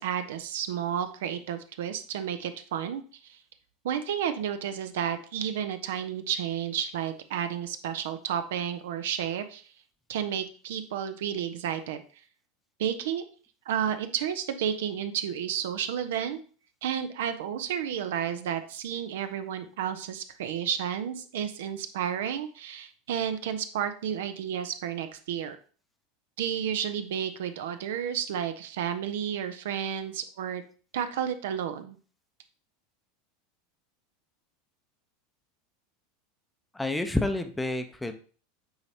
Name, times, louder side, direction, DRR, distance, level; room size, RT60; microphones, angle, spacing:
voice 1, 0.0-3.4 3.8-9.6 10.1-12.0 12.8-13.2 13.7-16.4 16.8-25.6 26.4-30.6 30.9-32.0, right 9 dB, 60° right, 10 dB, 0.5 m, -31 dB
voice 2, 36.7-38.1, left 2 dB, 5° left, 7 dB, 0.6 m, -29 dB
8.6 x 4.0 x 2.7 m, 0.40 s
figure-of-eight pair, 80°, 0 cm